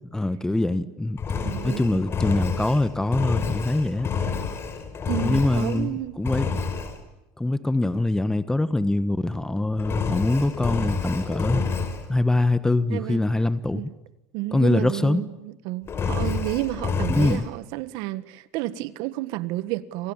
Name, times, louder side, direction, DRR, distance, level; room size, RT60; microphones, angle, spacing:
voice 1, 0.1-1.2 1.6-4.1 5.2-6.5 7.4-11.6 12.1-13.9 14.5-15.2 17.1-17.4, left 2 dB, 10° left, 1.4 m, -23 dB
Engine, 1.2-5.9 6.2-7.0 9.8-12.1 15.9-17.4, left 5 dB, 35° left, 5.3 m, -28 dB
voice 2, 1.4-2.0 5.1-6.1 12.9-13.2 13.7-13.9 14.3-20.1, right 16 dB, 65° right, 1.6 m, -31 dB
30.0 x 27.0 x 7.3 m
supercardioid pair, 95°, 7 cm